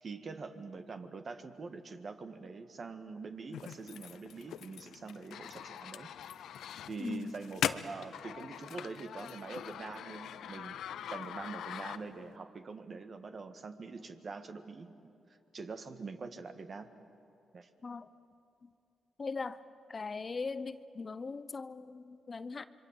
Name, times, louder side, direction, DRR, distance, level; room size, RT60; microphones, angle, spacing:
voice 1, 0.0-6.1 6.6-10.8 11.1-15.1 15.5-16.9 17.5-17.7, right 4 dB, 50° right, 8 dB, 1.7 m, -44 dB
sound 1, 3.5-12.4, left 9 dB, 80° left, 0.6 m, -42 dB
voice 2, 7.0-7.3 17.8-18.1 18.6-18.7 19.2-19.6 19.9-22.6, left 4 dB, 40° left, 13 dB, 0.8 m, -39 dB
26.5 x 23.5 x 7.6 m, 2.7 s
supercardioid pair, 60°, 0 cm